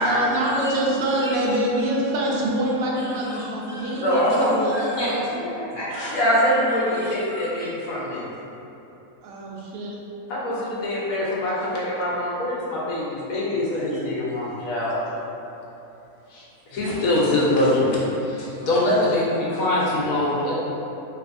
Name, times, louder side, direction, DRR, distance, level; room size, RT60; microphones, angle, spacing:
voice 1, 0.0-4.8 9.2-10.0 13.2-13.3 13.8-13.9, right 1 dB, 80° right, -3 dB, 1.0 m, -25 dB
voice 2, 3.0-4.4 4.7-6.6 6.9-7.7, equal, 25° left, -11 dB, 0.7 m, -33 dB
voice 3, 4.0-4.5 5.9-8.2 10.3-15.0 16.3-16.4 16.7-20.5, left 1 dB, 90° left, -6 dB, 1.2 m, -23 dB
3.3 x 2.9 x 2.5 m, 3.0 s
omnidirectional pair, 1.5 m